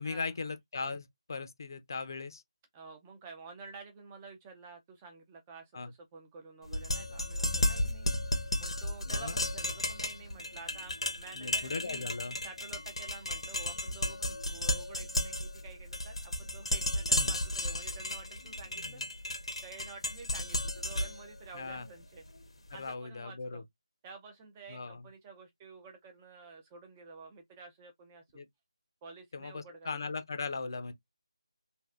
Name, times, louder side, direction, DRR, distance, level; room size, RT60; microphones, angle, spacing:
voice 1, 0.0-2.4 5.7-5.9 9.1-9.3 11.3-12.4 17.1-17.3 18.8-19.0 21.5-21.8 22.8-23.6 24.7-25.1 28.3-28.5 29.3-30.9, left 4 dB, 45° left, 0.6 m, -38 dB
voice 2, 2.7-8.1 8.6-12.0 12.4-19.0 19.6-22.3 22.7-23.6 24.0-28.4 29.0-30.0, right 4 dB, 15° right, 0.4 m, -50 dB
sound 1, 6.7-22.7, left 1 dB, 80° left, 1.0 m, -34 dB
3.3 x 2.4 x 2.3 m
figure-of-eight pair, 170°, 3 cm